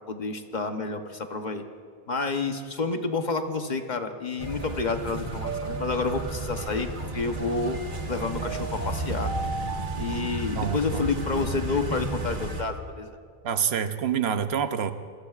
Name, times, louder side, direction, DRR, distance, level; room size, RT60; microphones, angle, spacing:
voice 1, 0.1-1.7 2.1-7.8 8.1-9.3 10.0-13.1, left 3 dB, 45° left, 6 dB, 1.0 m, -29 dB
sound 1, 4.4-12.6, right 2 dB, 50° right, 1.6 m, -32 dB
voice 2, 10.5-11.1 13.4-14.9, right 7 dB, 75° right, 10 dB, 1.0 m, -27 dB
27.0 x 21.5 x 2.4 m, 2.1 s
omnidirectional pair, 1.1 m